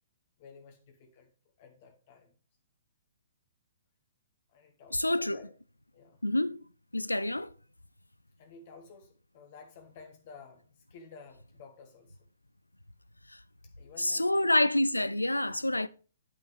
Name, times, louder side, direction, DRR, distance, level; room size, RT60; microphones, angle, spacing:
voice 1, 0.4-1.3 1.6-2.3 4.5-5.5 5.9-6.2 8.4-12.2 13.6-14.5, left 5 dB, 40° left, 1.3 m, -53 dB
voice 2, 4.9-5.4 6.2-6.6 6.9-7.5 13.3-13.4 14.0-15.9, left 1 dB, 90° left, 0.5 m, -27 dB
8.9 x 8.8 x 3.2 m
figure-of-eight pair, 120°, 0 cm